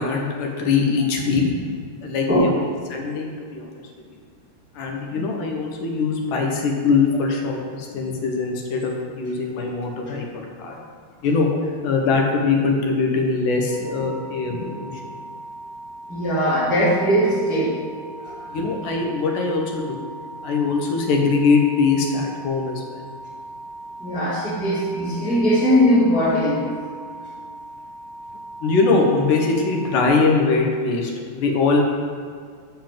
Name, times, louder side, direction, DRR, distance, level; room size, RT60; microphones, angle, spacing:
voice 1, 0.0-1.6 2.0-2.6 2.9-3.7 4.8-10.3 10.6-10.8 11.2-11.5 11.8-15.0 18.5-20.1 20.4-23.0 28.6-31.8, left 4 dB, 70° left, 1 dB, 2.2 m, -22 dB
sound 1, 13.7-30.1, right 1 dB, 50° left, 3.1 m, -39 dB
voice 2, 16.1-17.7 18.2-18.5 24.0-26.7, equal, 5° right, -8 dB, 1.1 m, -20 dB
7.0 x 5.6 x 7.5 m, 2.1 s
omnidirectional pair, 4.5 m